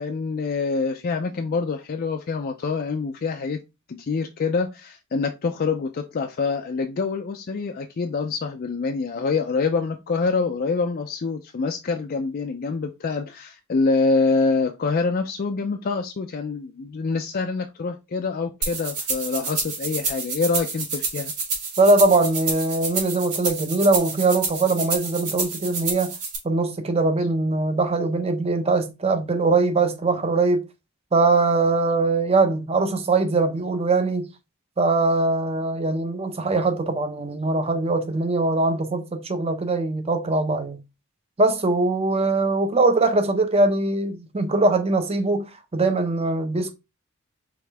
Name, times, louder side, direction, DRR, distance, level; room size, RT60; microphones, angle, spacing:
voice 1, 0.0-3.6 3.9-21.3, left 4 dB, 40° left, 0.4 m, -26 dB
sound 1, 18.6-26.4, right 4 dB, 85° right, 2.0 m, -29 dB
voice 2, 21.8-26.1 26.4-30.6 31.1-34.2 34.8-40.8 41.4-46.7, right 3 dB, 25° right, 0.6 m, -21 dB
4.9 x 3.1 x 3.4 m
head